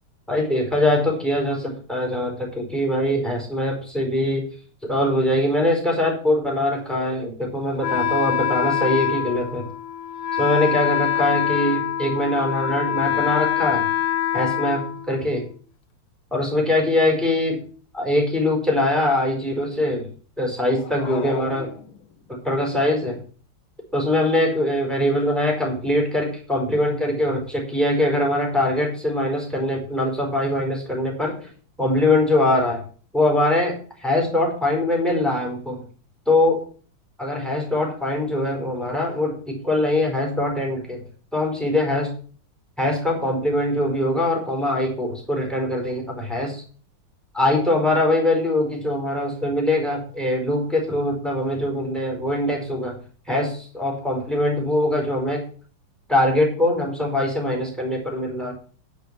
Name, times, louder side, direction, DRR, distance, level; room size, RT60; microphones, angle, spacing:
voice 1, 0.3-4.4 4.8-9.7 10.4-13.9 14.3-14.8 15.1-15.4 16.3-17.6 17.9-20.1 20.4-21.7 22.4-23.2 23.9-31.5 31.8-32.8 33.1-35.8 36.3-36.6 37.2-41.0 41.3-42.1 42.8-46.6 47.3-53.0 53.3-55.4 56.1-58.5, left 1 dB, ahead, 0 dB, 4.5 m, -22 dB
Wind instrument woodwind instrument, 7.8-15.5, left 10 dB, 85° left, 1.6 m, -24 dB
sound 1, 20.7-22.4, left 6 dB, 70° left, 2.2 m, -35 dB
10.5 x 6.3 x 7.4 m, 0.42 s
omnidirectional pair, 2.4 m